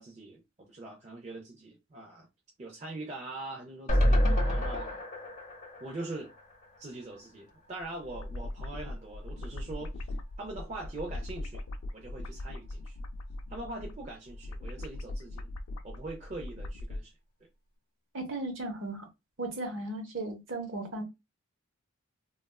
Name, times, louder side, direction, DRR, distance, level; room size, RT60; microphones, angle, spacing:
voice 1, 0.0-2.3 2.6-5.0 5.8-6.3 6.8-10.1 10.4-11.6 11.9-13.0 13.5-15.5 15.8-17.1, right 2 dB, 30° right, 0.4 m, -42 dB
sound 1, 3.9-7.1 7.5-7.6 7.8-7.9, equal, 35° left, 0.8 m, -28 dB
sound 2, 7.8-17.0, left 1 dB, 75° left, 0.4 m, -40 dB
voice 2, 18.1-19.1 19.4-21.0, right 2 dB, 60° right, 0.9 m, -36 dB
3.2 x 2.3 x 2.2 m
head